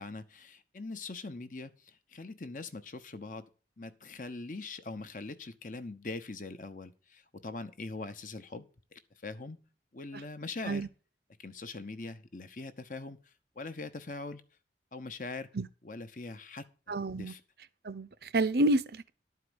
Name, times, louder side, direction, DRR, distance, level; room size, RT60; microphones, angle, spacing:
voice 1, 0.0-3.5 3.8-9.6 9.9-10.9 11.4-14.4 14.9-15.5 15.8-17.4, left 3 dB, 45° left, 0.9 m, -42 dB
voice 2, 16.9-17.3 17.8-19.1, right 2 dB, 60° right, 0.7 m, -29 dB
12.0 x 4.7 x 7.9 m
head